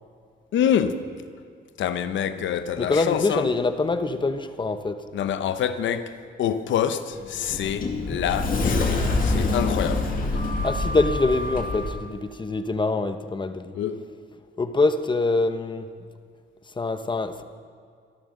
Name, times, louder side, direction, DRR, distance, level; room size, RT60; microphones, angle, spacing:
voice 1, 0.5-1.1 1.8-3.5 5.1-10.1 13.7-14.0, left 9 dB, 70° left, 0.9 m, -26 dB
voice 2, 2.8-5.0 10.6-13.8 14.6-15.9 16.7-17.4, left 3 dB, 25° left, 1.0 m, -24 dB
Sliding door, 7.1-11.9, left 2 dB, 45° left, 2.3 m, -25 dB
26.0 x 11.5 x 3.9 m
cardioid pair, 90°, 20 cm